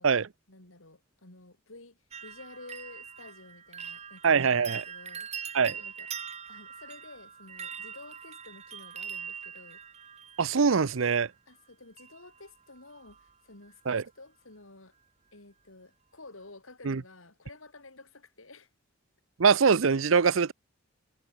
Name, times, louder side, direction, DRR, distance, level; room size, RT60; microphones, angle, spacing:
voice 1, 0.5-6.1 6.5-9.8 11.5-15.0 15.3-18.7, left 2 dB, 80° left, 4.5 m, -51 dB
sound 1, 2.1-11.0 12.0-12.5 12.8-13.3 13.6-13.7, right 7 dB, 35° right, 1.8 m, -42 dB
voice 2, 4.2-4.8 5.5-5.8 10.4-11.3 13.9-14.0 16.8-17.0 19.4-20.5, right 5 dB, 75° right, 0.7 m, -23 dB
head